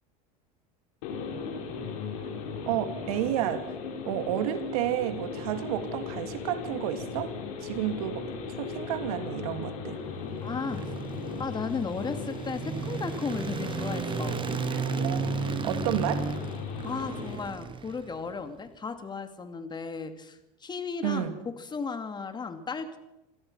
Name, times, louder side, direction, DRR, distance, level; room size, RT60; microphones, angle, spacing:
sound 1, 1.0-17.4, left 5 dB, 75° left, 5.6 m, -37 dB
voice 1, 2.7-3.7 4.0-7.3 7.6-10.0 14.7-15.2 15.5-16.3 21.0-21.4, right 12 dB, 80° right, 8 dB, 2.7 m, -31 dB
sound 2, 10.0-18.4, right 6 dB, 25° right, 1.3 m, -34 dB
voice 2, 10.4-10.9 11.4-14.4 16.8-23.0, left 5 dB, 25° left, 8 dB, 2.7 m, -35 dB
Train, 12.0-16.8, right 8 dB, 50° right, 3.8 m, -50 dB
27.0 x 17.0 x 5.8 m, 0.93 s
supercardioid pair, 100°, 19 cm